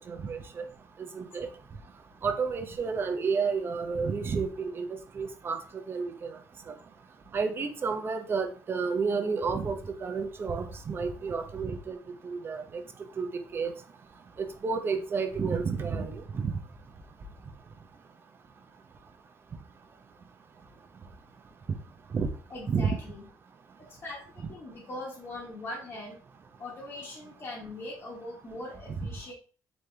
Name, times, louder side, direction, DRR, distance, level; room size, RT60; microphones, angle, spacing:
voice 1, 0.1-0.4 1.1-1.5 2.2-4.9 5.2-5.6 5.9-6.3 7.3-12.0 12.2-12.6 13.2-13.3 13.5-13.7 14.4-16.5 22.1-22.3 22.7-23.0, right 5 dB, 35° right, 6 dB, 0.7 m, -30 dB
voice 2, 22.5-23.3 23.8-26.2 26.6-29.3, left 1 dB, 40° left, -5 dB, 1.4 m, -41 dB
4.0 x 3.3 x 3.3 m, 0.40 s
cardioid pair, 125°, 7 cm